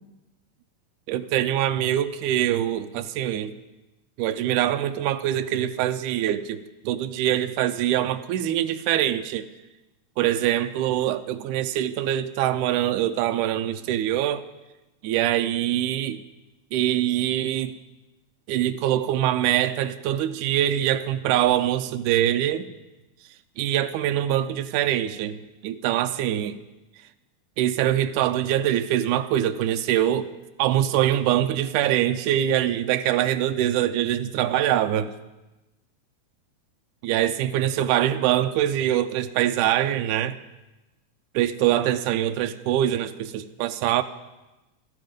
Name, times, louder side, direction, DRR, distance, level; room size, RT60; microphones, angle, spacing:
voice 1, 1.1-3.5 4.2-9.5 10.2-14.5 15.0-16.2 16.7-17.7 18.5-22.7 23.6-26.6 27.6-30.3 30.6-35.1 37.0-40.4 41.3-44.0, right 12 dB, 80° right, 8 dB, 2.1 m, -24 dB
16.0 x 13.5 x 5.2 m, 1.0 s
omnidirectional pair, 3.6 m